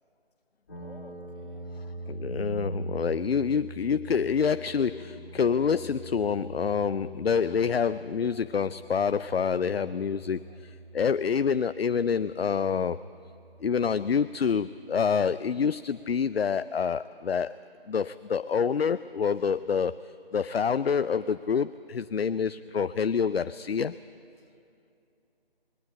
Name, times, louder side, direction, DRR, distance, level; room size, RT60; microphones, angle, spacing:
sound 1, 0.7-14.7, right 2 dB, 20° left, 2.7 m, -42 dB
voice 1, 0.8-2.2, left 2 dB, 55° left, 3 dB, 2.9 m, -54 dB
voice 2, 2.1-13.0 13.6-17.6 17.9-20.0 20.3-23.9, left 6 dB, 75° left, 13 dB, 0.6 m, -27 dB
20.0 x 18.0 x 8.8 m, 2.6 s
figure-of-eight pair, 170°, 31 cm